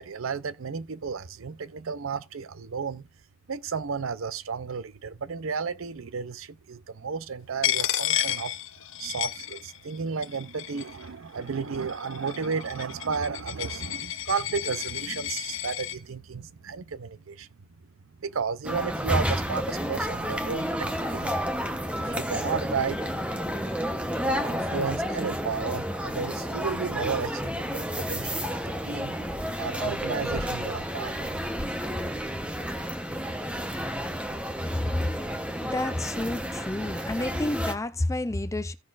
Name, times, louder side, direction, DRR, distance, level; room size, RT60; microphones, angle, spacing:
voice 1, 0.0-3.1 3.5-8.5 9.0-17.5 18.2-21.4 22.0-23.0 24.2-29.2 29.6-31.3, right 5 dB, 70° right, 0.6 m, -33 dB
Coin (dropping), 7.6-10.0 10.2-11.0 11.7-16.0, left 12 dB, 60° left, 0.8 m, -31 dB
sound 1, 18.6-37.7, equal, 5° right, 0.9 m, -31 dB
voice 2, 35.6-38.7, left 1 dB, 15° left, 0.4 m, -30 dB
16.0 x 5.9 x 2.5 m
head